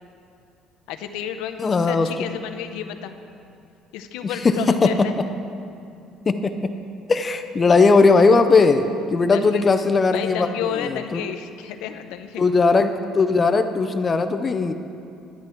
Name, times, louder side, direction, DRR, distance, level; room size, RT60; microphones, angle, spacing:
voice 1, 0.9-3.1 3.9-5.1 9.3-9.6 10.1-12.5, left 9 dB, 90° left, 7 dB, 0.7 m, -31 dB
voice 2, 1.6-2.4 4.2-5.1 6.3-6.7 7.1-11.2 12.4-14.7, left 4 dB, 20° left, 8 dB, 0.4 m, -19 dB
11.5 x 10.5 x 4.5 m, 2.6 s
cardioid pair, 165°, 0 cm